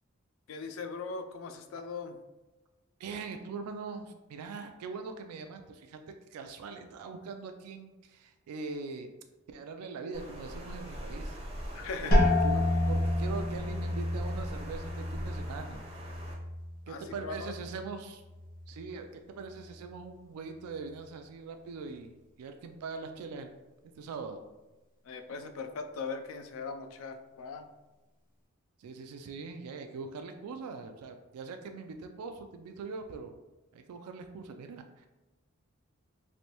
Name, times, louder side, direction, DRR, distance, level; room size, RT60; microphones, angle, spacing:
voice 1, 0.5-2.2 11.7-12.3 16.9-17.5 25.0-27.7, left 4 dB, 65° left, 6 dB, 0.3 m, -40 dB
voice 2, 3.0-6.0 6.3-9.1 9.5-11.4 12.0-12.6 12.9-15.8 16.9-18.2 18.7-23.5 24.0-24.4 28.8-33.3 33.7-35.1, right 4 dB, 85° right, 9 dB, 0.3 m, -42 dB
Water, 10.1-16.3, equal, 25° right, 0.5 m, -43 dB
sound 1, 12.1-17.7 18.1-18.8 19.3-19.7, left 1 dB, 40° left, 0.8 m, -30 dB
3.2 x 2.6 x 2.8 m, 1.1 s
head